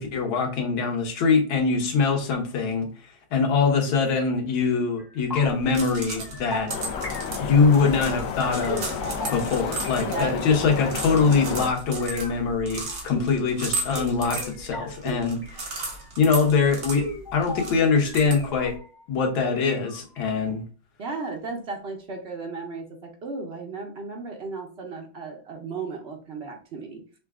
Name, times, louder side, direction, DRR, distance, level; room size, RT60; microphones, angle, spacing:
voice 1, 0.0-2.9 3.3-6.7 7.4-9.0 9.3-17.0 17.3-18.7 19.1-20.6, left 5 dB, 85° left, 3 dB, 1.8 m, -23 dB
sound 1, 5.0-5.6 5.9-10.3 10.7-12.4 12.7-13.4 14.0-16.1 16.6-19.0 19.3-20.3, left 1 dB, 15° left, 1.0 m, -39 dB
sound 2, 5.5-18.8, right 3 dB, 55° right, 1.7 m, -36 dB
sound 3, 6.7-11.7, left 6 dB, 70° left, 1.1 m, -32 dB
voice 2, 10.0-10.4 21.0-27.0, right 4 dB, 80° right, 1 dB, 0.5 m, -35 dB
5.6 x 2.3 x 3.5 m, 0.39 s
omnidirectional pair, 2.1 m